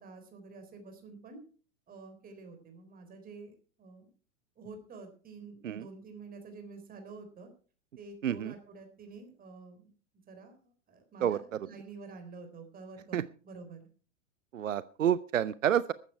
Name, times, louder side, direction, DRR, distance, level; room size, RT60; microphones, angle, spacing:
voice 1, 0.0-1.4 1.9-4.1 4.6-7.5 8.0-9.9 10.3-13.8, right 4 dB, 20° right, 6 dB, 3.9 m, -49 dB
voice 2, 14.5-15.9, right 10 dB, 75° right, 18 dB, 0.7 m, -28 dB
14.5 x 12.5 x 4.6 m, 0.39 s
figure-of-eight pair, 100°, 39 cm